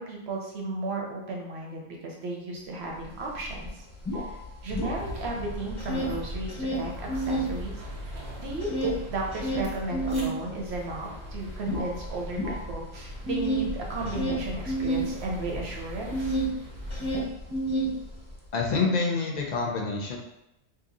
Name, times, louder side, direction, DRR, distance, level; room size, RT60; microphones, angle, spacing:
voice 1, 0.0-3.8 4.1-7.7 8.0-16.4, right 2 dB, 60° right, 0 dB, 1.0 m, -35 dB
sound 1, 3.0-3.1 3.4-5.4 5.7-7.5 7.9-16.5 16.8-18.4, right 1 dB, 20° left, 0.9 m, -30 dB
sound 2, 4.7-17.3, equal, 45° right, 0.7 m, -39 dB
voice 2, 18.5-20.2, left 4 dB, 50° left, 0 dB, 0.5 m, -27 dB
2.9 x 2.6 x 3.9 m, 0.87 s
omnidirectional pair, 1.3 m